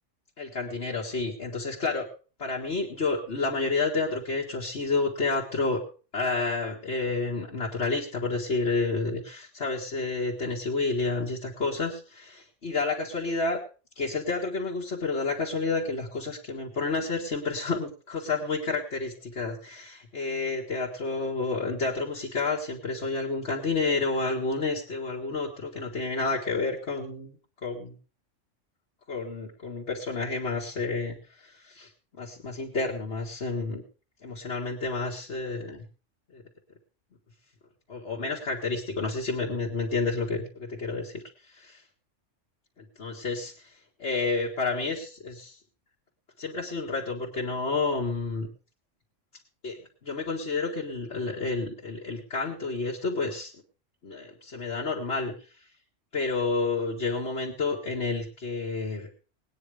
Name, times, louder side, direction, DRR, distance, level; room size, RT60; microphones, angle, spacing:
voice 1, 0.4-2.1 2.4-5.8 6.1-13.6 14.0-27.3 27.6-27.9 29.1-31.9 32.2-33.8 34.2-35.8 36.3-36.4 37.9-41.2 41.5-41.8 42.8-43.7 44.0-45.6 46.4-48.5 49.6-49.8 50.0-53.5 54.0-55.3 56.1-59.1, left 3 dB, 60° left, -3 dB, 2.0 m, -30 dB
19.0 x 9.6 x 4.9 m, 0.38 s
omnidirectional pair, 1.3 m